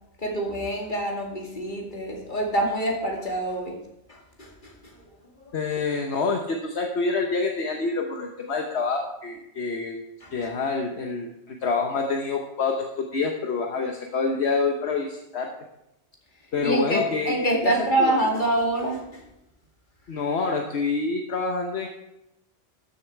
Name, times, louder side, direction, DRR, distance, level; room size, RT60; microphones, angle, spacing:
voice 1, 0.2-3.8 4.1-5.0 5.5-5.6 10.2-10.3 16.6-19.2, right 1 dB, 45° left, 0 dB, 2.5 m, -26 dB
voice 2, 5.5-10.0 10.3-15.5 16.5-17.3 17.6-17.7 18.0-18.1 20.1-21.9, left 4 dB, 70° left, 2 dB, 1.3 m, -27 dB
13.5 x 7.2 x 4.6 m, 0.88 s
omnidirectional pair, 1.2 m